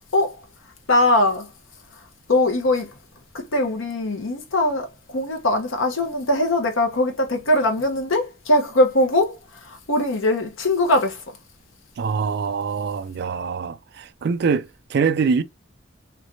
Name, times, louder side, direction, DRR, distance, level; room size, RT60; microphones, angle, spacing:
voice 1, 0.1-0.4 0.9-1.5 2.3-2.9 3.3-11.2, left 1 dB, 85° left, 0.9 m, -21 dB
voice 2, 12.0-15.4, right 5 dB, 55° right, 0.3 m, -24 dB
3.3 x 3.1 x 2.5 m
head